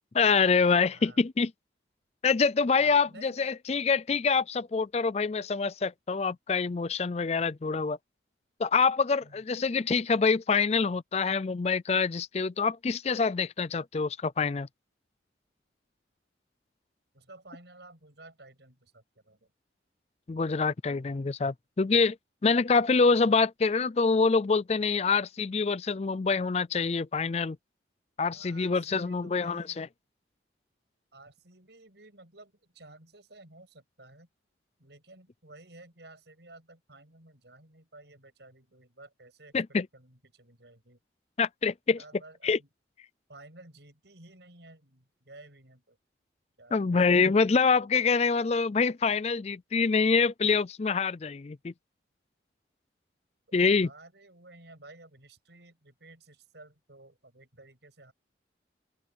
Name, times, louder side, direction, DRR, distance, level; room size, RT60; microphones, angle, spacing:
voice 1, 0.1-1.5 2.2-8.0 8.6-14.7 20.3-22.2 22.4-27.6 28.2-29.9 39.5-39.9 41.4-42.0 42.4-42.6 46.7-51.7 53.5-53.9, left 4 dB, 35° left, 0.4 m, -26 dB
voice 2, 0.9-1.2 2.8-3.6 9.2-9.4 17.1-19.5 28.3-29.9 31.1-34.3 34.8-39.6 39.9-41.0 42.0-42.7 43.3-46.0 46.6-47.0 47.2-47.4 53.5-53.6 53.8-58.1, right 2 dB, 65° right, 6.6 m, -53 dB
open air
head